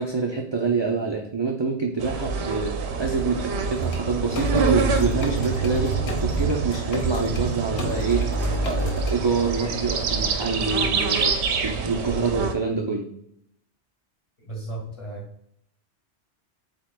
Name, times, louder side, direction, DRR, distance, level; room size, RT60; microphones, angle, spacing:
voice 1, 0.0-8.3 8.6-11.4 11.6-13.1, right 4 dB, 35° right, 0 dB, 0.4 m, -26 dB
sound 1, 2.0-12.5, right 5 dB, 75° right, 0.9 m, -27 dB
sound 2, 3.7-4.0 4.4-7.4 7.8-9.1, right 1 dB, 75° left, 1.0 m, -28 dB
voice 2, 14.4-15.3, right 2 dB, 30° left, -3 dB, 1.8 m, -35 dB
7.3 x 2.8 x 2.2 m, 0.72 s
omnidirectional pair, 1.1 m